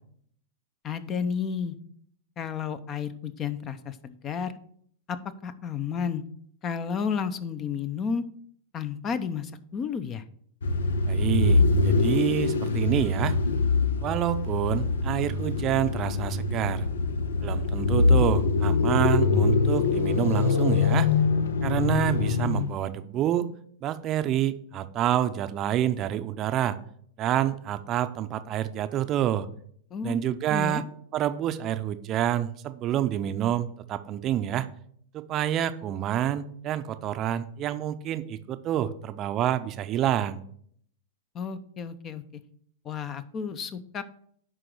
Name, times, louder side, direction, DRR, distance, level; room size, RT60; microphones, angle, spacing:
voice 1, 0.8-1.8 2.4-4.5 5.1-6.2 6.6-8.2 8.7-10.2 29.9-30.2 30.5-30.8 41.3-42.2 42.8-44.0, left 6 dB, 30° left, 13 dB, 0.7 m, -32 dB
sound 1, 10.6-22.8, left 4 dB, 75° left, 0.7 m, -24 dB
voice 2, 11.1-13.4 14.0-16.9 17.4-21.1 21.6-23.5 23.8-26.8 27.2-29.5 30.0-30.8 31.1-34.7 35.1-40.4, right 11 dB, 35° right, 10 dB, 0.6 m, -27 dB
10.5 x 3.9 x 6.2 m, 0.62 s
hypercardioid pair, 100°, 0 cm